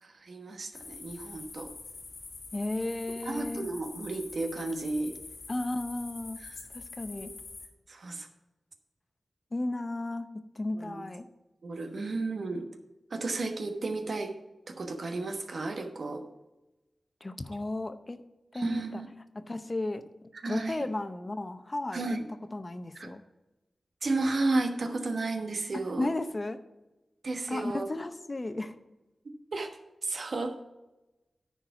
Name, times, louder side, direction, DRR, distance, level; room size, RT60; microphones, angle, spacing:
voice 1, 0.0-1.7 3.2-5.1 6.4-6.6 7.2-7.3 7.9-8.3 10.7-11.0 11.6-12.7 13.1-14.3 14.7-16.2 18.5-19.1 20.4-20.8 21.9-22.3 22.9-23.1 24.0-26.1 27.2-27.9 29.5-29.7 30.0-30.6, right 3 dB, 70° right, 5 dB, 1.2 m, -33 dB
sound 1, 0.7-7.7, left 4 dB, 85° left, 1.3 m, -45 dB
voice 2, 2.5-3.7 5.5-6.4 6.7-7.3 9.5-11.3 17.2-18.2 18.5-19.0 19.3-20.0 20.5-22.0 22.5-23.2 26.0-26.6 27.5-28.7, left 2 dB, 40° left, 10 dB, 0.7 m, -34 dB
9.8 x 4.7 x 5.8 m, 1.0 s
cardioid pair, 50°, 0 cm